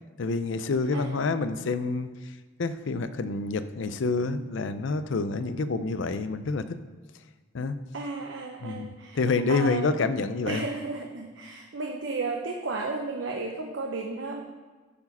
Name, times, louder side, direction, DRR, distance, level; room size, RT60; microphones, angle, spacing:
voice 1, 0.2-2.1 2.6-6.8 7.5-7.8 8.6-10.6, left 3 dB, 65° left, 12 dB, 0.5 m, -28 dB
voice 2, 0.9-1.3 7.9-10.0 10.5-14.4, right 3 dB, 65° right, 2 dB, 0.7 m, -34 dB
9.8 x 4.8 x 5.3 m, 1.4 s
head